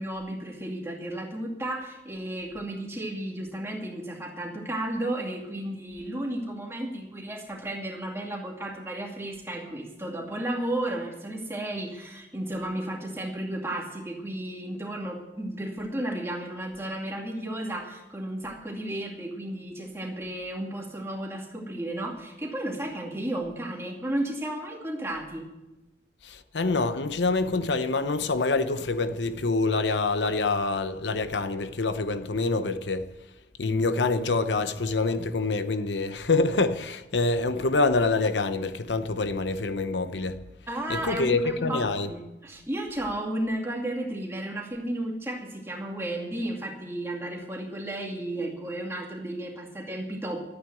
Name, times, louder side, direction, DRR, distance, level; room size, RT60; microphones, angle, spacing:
voice 1, 0.0-25.4 40.7-50.4, right 1 dB, 15° right, 2.3 m, -33 dB
voice 2, 26.2-33.1 33.6-40.4 40.9-42.1, left 3 dB, 85° left, 0.8 m, -26 dB
12.5 x 9.2 x 9.1 m
head